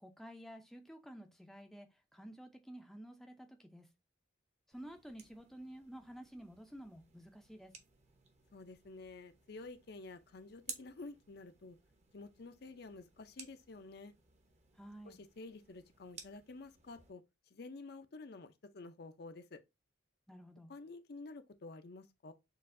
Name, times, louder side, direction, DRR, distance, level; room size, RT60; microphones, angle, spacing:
voice 1, 0.0-3.9 4.7-7.7 14.8-15.2 20.3-20.7, equal, ahead, 0.5 m, -52 dB
sound 1, 4.7-17.1, right 5 dB, 35° right, 0.8 m, -57 dB
voice 2, 8.5-11.8 12.1-14.1 15.0-17.2 17.5-19.6 20.7-22.3, left 3 dB, 55° left, 0.5 m, -50 dB
6.5 x 2.5 x 2.5 m
head